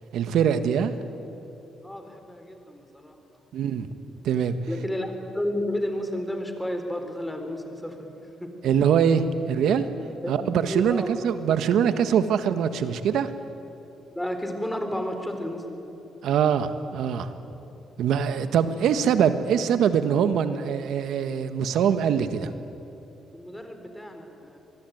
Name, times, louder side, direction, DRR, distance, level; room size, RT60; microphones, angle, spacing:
voice 1, 0.1-0.9 3.5-3.9 4.2-4.6 8.6-9.9 10.3-13.3 16.2-17.3 18.0-22.5, right 8 dB, 80° right, 10 dB, 1.5 m, -23 dB
voice 2, 1.8-3.2 4.7-8.1 8.4-8.5 10.2-11.1 11.5-11.6 14.2-15.9 17.6-17.9 18.2-18.8 23.3-24.6, left 1 dB, 5° left, 6 dB, 4.0 m, -32 dB
25.5 x 20.5 x 9.3 m, 2.9 s
cardioid pair, 90°, 0 cm